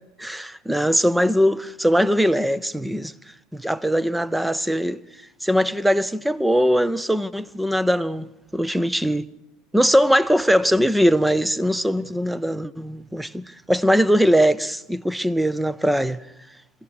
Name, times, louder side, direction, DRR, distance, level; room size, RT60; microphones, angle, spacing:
voice 1, 0.2-3.1 3.5-5.0 5.4-9.3 9.7-16.2, equal, 5° right, 0.7 m, -21 dB
29.5 x 16.0 x 6.6 m
figure-of-eight pair, 70°, 0 cm